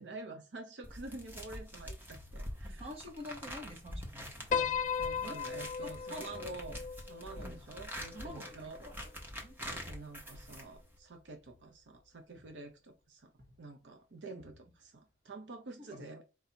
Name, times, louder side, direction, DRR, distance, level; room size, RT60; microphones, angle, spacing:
voice 1, 0.0-2.9 5.0-6.8 7.1-8.8 9.7-13.3 13.6-16.2, right 3 dB, 65° right, 4 dB, 0.7 m, -48 dB
sound 1, 0.8-11.0, equal, 10° right, 0.9 m, -46 dB
sound 2, 1.1-3.9 4.4-8.1 8.4-12.0 12.4-12.9 13.3-15.6, left 2 dB, 50° right, 1.8 m, -65 dB
voice 2, 2.6-4.5 5.2-5.4 5.8-6.4 7.4-7.6 8.1-9.1 9.4-9.6 15.9-16.0, left 1 dB, 30° right, 2 dB, 1.2 m, -47 dB
Piano, 4.5-8.9, left 7 dB, 40° left, 0.3 m, -37 dB
4.5 x 2.7 x 4.3 m, 0.30 s
head